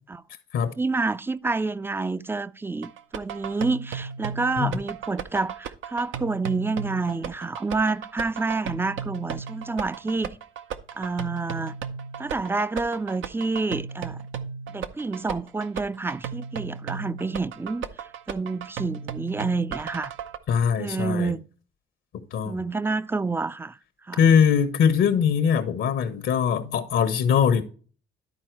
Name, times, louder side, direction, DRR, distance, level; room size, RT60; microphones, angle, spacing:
voice 1, 0.8-10.4 11.0-11.8 12.2-14.2 14.7-17.9 18.3-20.1 20.8-21.4 22.5-23.8 24.1-24.2, right 3 dB, 10° right, 0.4 m, -28 dB
sound 1, 2.8-20.4, right 7 dB, 80° right, 0.8 m, -35 dB
voice 2, 20.5-21.3 22.3-22.6 24.2-27.6, left 7 dB, 75° left, 1.1 m, -21 dB
12.0 x 4.3 x 4.6 m
cardioid pair, 90°, 20 cm